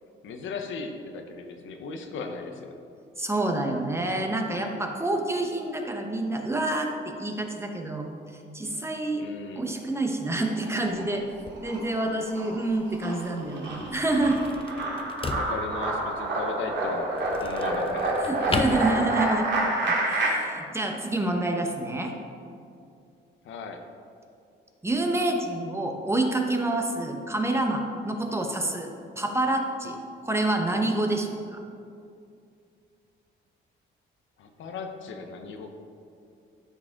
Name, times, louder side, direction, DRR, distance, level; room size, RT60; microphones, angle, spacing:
voice 1, 0.2-2.8 9.2-9.7 15.3-19.0 23.4-23.8 34.4-35.7, left 4 dB, 75° left, 5 dB, 0.9 m, -37 dB
voice 2, 3.2-8.2 8.5-9.2 9.6-11.2 11.6-14.4 18.2-19.5 19.8-22.1 24.8-28.9 29.2-30.0 30.2-31.6, right 2 dB, 15° right, 3 dB, 1.0 m, -27 dB
sound 1, 10.4-11.2 11.5-20.3, right 2 dB, 60° right, 2.1 m, -28 dB
sound 2, 10.9-19.6, left 3 dB, 25° left, 0.6 m, -38 dB
12.5 x 4.8 x 3.7 m, 2.4 s
cardioid pair, 90°, 20 cm